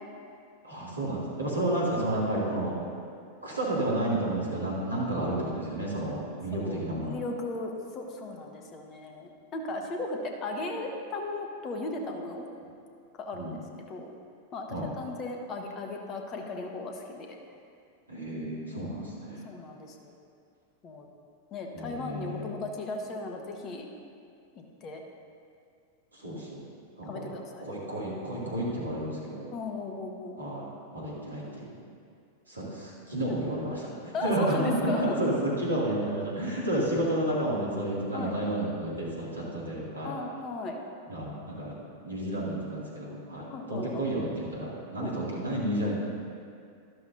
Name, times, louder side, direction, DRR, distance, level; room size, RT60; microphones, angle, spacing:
voice 1, 0.6-2.7 3.4-7.2 13.3-13.5 14.7-14.9 18.1-19.5 21.7-22.5 26.1-26.6 27.0-27.3 27.6-29.5 30.4-31.7 32.5-33.8 34.2-40.2 41.1-41.8 42.0-45.9, right 1 dB, 80° right, -5 dB, 2.6 m, -31 dB
voice 2, 6.5-6.8 7.1-12.5 13.2-13.6 13.9-14.1 14.5-17.3 18.7-19.0 19.4-20.1 20.8-21.1 21.5-23.9 24.5-25.0 27.0-27.7 29.5-30.5 33.4-33.5 34.1-35.2 38.1-38.4 40.0-40.8 43.5-44.1 45.0-45.2, left 2 dB, 35° left, 2 dB, 1.3 m, -36 dB
12.0 x 12.0 x 2.7 m, 2.3 s
figure-of-eight pair, 90°, 0 cm